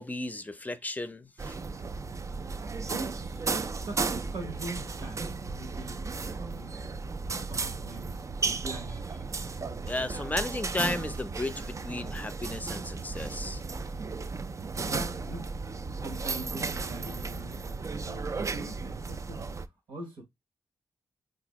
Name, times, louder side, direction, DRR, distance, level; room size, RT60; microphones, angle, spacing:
voice 1, 0.0-1.6 9.9-13.6, left 2 dB, 20° left, 0.6 m, -34 dB
sound 1, 1.4-19.7, right 4 dB, 35° right, 0.4 m, -35 dB
voice 2, 2.8-6.1 6.4-6.7 7.2-9.0 14.8-15.5 15.9-19.5 19.9-20.2, right 2 dB, 75° right, 1.0 m, -42 dB
3.3 x 2.6 x 3.0 m
supercardioid pair, 45°, 9 cm